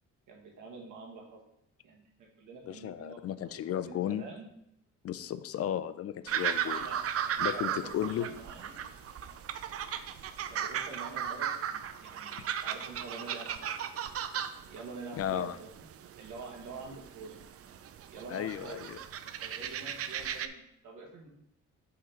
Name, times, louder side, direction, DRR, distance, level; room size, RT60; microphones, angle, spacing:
voice 1, 0.3-1.4 1.8-3.4 3.7-4.4 6.6-8.8 10.5-12.3 12.6-13.7 14.7-15.7 16.2-17.4 18.1-18.8 19.4-21.3, right 4 dB, 80° right, 0 dB, 1.6 m, -46 dB
voice 2, 2.7-4.2 5.0-6.8 7.4-8.3 15.2-15.6 18.3-19.0, left 10 dB, 50° left, 13 dB, 0.4 m, -34 dB
sound 1, 6.3-20.5, right 9 dB, 50° right, 0.5 m, -36 dB
5.5 x 3.8 x 5.7 m, 0.77 s
cardioid pair, 90°, 30 cm